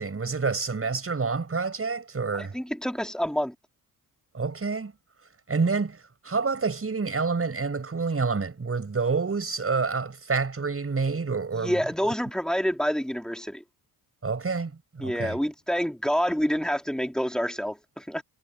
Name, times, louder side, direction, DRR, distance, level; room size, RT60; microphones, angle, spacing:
voice 1, 0.0-2.5 4.3-4.9 5.5-11.8 14.2-15.4, right 4 dB, 30° right, 6.9 m, -28 dB
voice 2, 2.4-3.5 11.5-13.6 15.0-18.2, equal, ahead, 3.9 m, -27 dB
cardioid pair, 70°, 42 cm